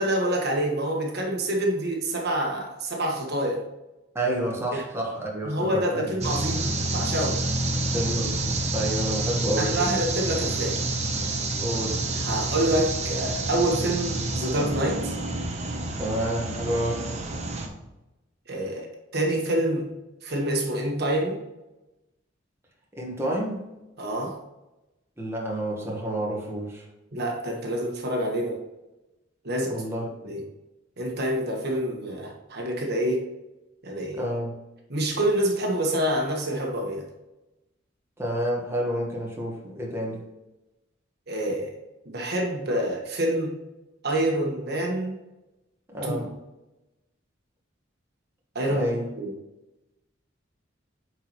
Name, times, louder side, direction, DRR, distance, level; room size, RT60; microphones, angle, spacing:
voice 1, 0.0-3.6 4.7-4.8 5.4-7.4 9.6-10.8 12.1-15.2 18.5-19.9 20.2-21.4 24.0-24.4 27.1-28.6 29.4-29.8 30.2-30.4 31.0-33.3 33.8-34.2 34.9-37.0 41.3-41.7 42.0-43.6 44.0-45.2 46.0-46.3 48.5-48.9 49.2-49.3, right 1 dB, 55° right, 1 dB, 1.3 m, -27 dB
voice 2, 4.1-6.0 7.9-9.9 11.6-12.0 16.0-17.0 23.0-23.6 25.2-26.8 29.7-30.0 34.1-34.5 38.2-40.2 45.9-46.3 48.7-49.1, right 1 dB, 15° right, -2 dB, 1.4 m, -29 dB
sound 1, 6.2-17.7, right 2 dB, 35° right, 0.9 m, -28 dB
9.0 x 4.6 x 3.1 m, 1.0 s
head